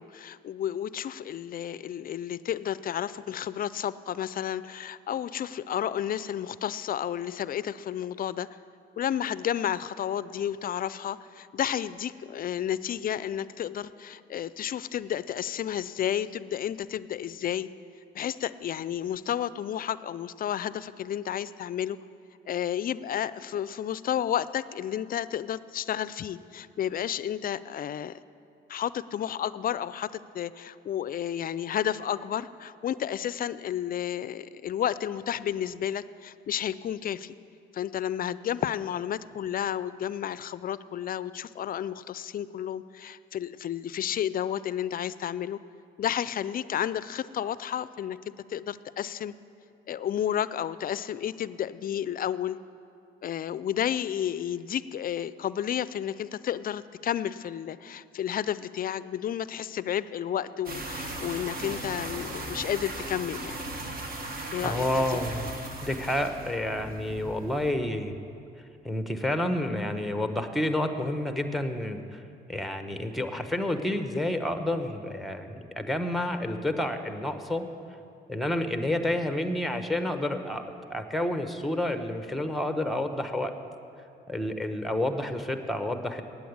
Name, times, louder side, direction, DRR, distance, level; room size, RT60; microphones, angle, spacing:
voice 1, 0.0-8.5 9.0-17.7 18.1-22.0 22.5-28.1 28.7-30.1 30.3-37.4 37.7-45.6 46.0-48.2 48.5-49.3 49.9-52.6 53.2-63.6 64.5-65.2, left 10 dB, 45° left, 16 dB, 0.4 m, -31 dB
sound 1, 60.7-67.7, right 2 dB, 50° right, 1.5 m, -37 dB
voice 2, 64.6-65.5 65.8-68.1 68.8-72.2 72.5-77.6 78.3-80.6 80.9-83.5 84.3-86.2, left 1 dB, ahead, 7 dB, 0.9 m, -29 dB
8.8 x 8.3 x 9.4 m, 2.5 s
cardioid pair, 90°, 20 cm